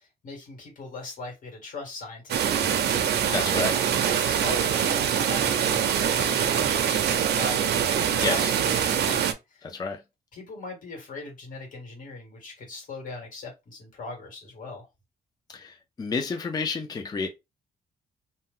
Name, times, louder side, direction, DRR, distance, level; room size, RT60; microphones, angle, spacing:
voice 1, 0.0-3.2 3.8-9.7 10.3-14.9, left 3 dB, 55° left, 1.6 m, -40 dB
sound 1, 2.3-9.3, right 8 dB, 85° right, 0.5 m, -24 dB
voice 2, 3.3-3.8 8.2-8.5 9.6-10.0 15.5-17.3, left 4 dB, 25° left, 0.4 m, -30 dB
2.7 x 2.1 x 3.5 m
wide cardioid pair, 155°, 17 cm